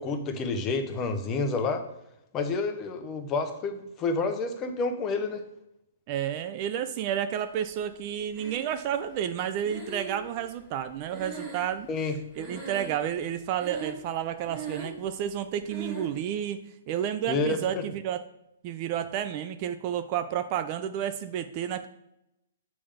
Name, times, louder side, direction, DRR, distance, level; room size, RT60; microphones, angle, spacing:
voice 1, 0.0-1.8 2.3-5.4 11.9-12.1 17.3-17.8, left 3 dB, 25° left, 6 dB, 0.8 m, -29 dB
voice 2, 6.1-11.9 12.4-16.6 16.9-18.2 18.6-21.9, right 10 dB, 35° right, 10 dB, 0.4 m, -31 dB
Breathing, 8.3-9.1 9.6-12.1 12.3-13.2 13.5-14.1 14.4-15.1 15.7-16.2, right 4 dB, 15° right, 1.9 m, -39 dB
6.9 x 3.4 x 5.1 m, 0.85 s
hypercardioid pair, 145°, 0 cm